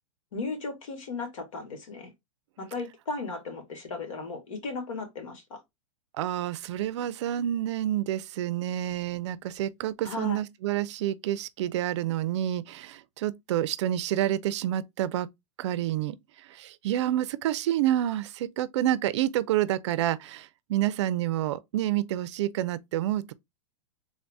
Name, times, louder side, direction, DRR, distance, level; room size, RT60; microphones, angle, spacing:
voice 1, 0.3-2.1 2.6-5.6 10.0-10.4, left 3 dB, 85° left, 1.8 m, -36 dB
voice 2, 6.1-15.3 15.6-16.2 16.5-23.3, right 12 dB, 60° right, 0.4 m, -28 dB
3.6 x 2.6 x 3.4 m
hypercardioid pair, 140°, 16 cm